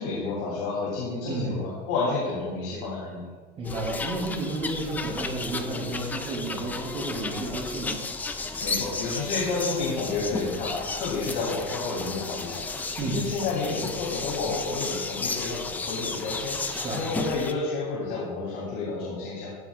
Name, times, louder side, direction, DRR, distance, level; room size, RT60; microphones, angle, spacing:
voice 1, 0.0-3.2 8.6-19.5, left 3 dB, 70° left, -6 dB, 3.2 m, -30 dB
voice 2, 1.3-1.6 3.6-8.0 13.0-13.2 16.7-17.1, right 2 dB, 30° right, -2 dB, 3.0 m, -31 dB
sound 1, 3.6-17.5, left 3 dB, 10° left, 0.3 m, -33 dB
15.5 x 9.0 x 2.4 m, 1.5 s
cardioid pair, 180°, 20 cm